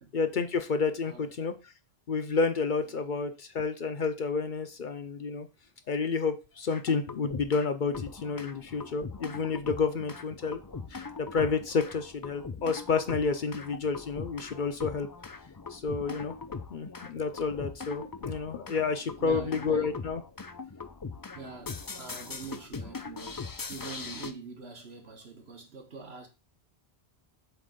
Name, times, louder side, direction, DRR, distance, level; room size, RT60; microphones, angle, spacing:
voice 1, 0.1-1.5 2.1-5.5 5.9-10.6 10.9-15.1 15.7-16.3 16.7-20.2, left 5 dB, 55° left, 0.7 m, -30 dB
sound 1, 6.7-7.7 7.9-24.3, left 4 dB, 35° left, 0.3 m, -41 dB
voice 2, 19.2-19.9 21.4-26.3, right 5 dB, 70° right, 1.7 m, -44 dB
7.4 x 3.1 x 5.1 m
omnidirectional pair, 1.1 m